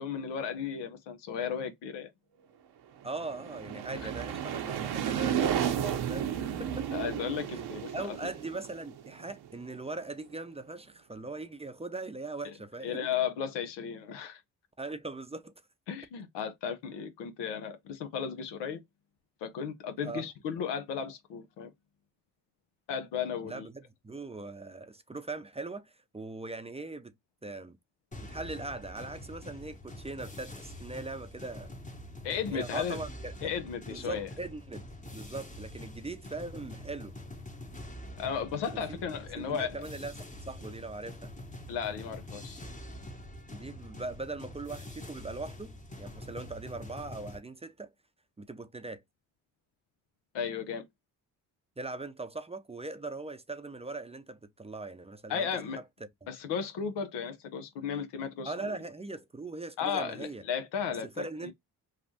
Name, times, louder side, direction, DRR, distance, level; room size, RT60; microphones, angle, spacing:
voice 1, 0.0-2.1 6.9-8.2 12.4-12.5 12.8-14.4 15.9-18.8 19.4-21.7 22.9-23.7 32.2-33.0 33.4-34.3 38.2-39.8 41.7-42.6 50.3-50.9 55.3-55.8 56.3-58.5 59.8-61.5, left 7 dB, 80° left, 0.8 m, -35 dB
voice 2, 3.0-6.3 6.6-7.0 7.9-13.1 14.8-15.5 20.0-20.3 23.4-27.1 27.4-27.8 28.2-31.7 32.5-33.5 33.9-34.8 35.1-37.1 38.7-39.0 39.4-41.3 43.5-47.9 48.4-49.0 51.8-55.5 56.2-56.3 58.4-60.4 61.0-61.5, right 3 dB, 15° right, 0.5 m, -40 dB
sound 1, 3.0-9.7, right 9 dB, 65° right, 0.7 m, -33 dB
sound 2, 28.1-47.4, left 1 dB, 20° left, 1.0 m, -45 dB
3.3 x 2.3 x 2.7 m
supercardioid pair, 50°, 41 cm